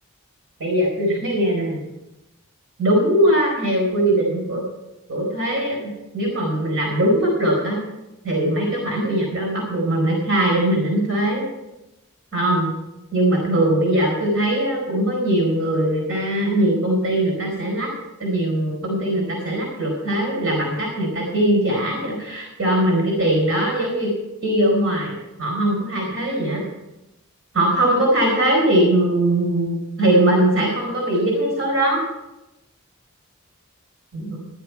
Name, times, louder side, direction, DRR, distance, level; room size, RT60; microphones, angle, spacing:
voice 1, 0.6-1.8 2.8-4.6 5.1-7.8 8.2-11.4 12.3-12.7 13.1-17.9 18.2-24.1 24.4-26.6 27.5-32.0 34.1-34.4, right 1 dB, 85° right, -2 dB, 4.4 m, -20 dB
14.5 x 10.5 x 4.7 m, 0.98 s
head